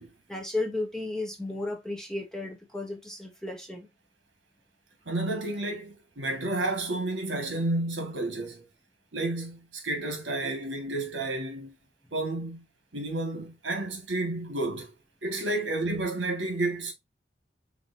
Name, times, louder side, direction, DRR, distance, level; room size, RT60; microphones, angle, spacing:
voice 1, 0.3-3.9, left 2 dB, 5° left, 1.1 m, -34 dB
voice 2, 5.0-8.6 9.1-11.7 12.1-12.6 12.9-14.9 15.2-16.9, right 2 dB, 75° right, 1.7 m, -31 dB
5.1 x 3.9 x 2.7 m
head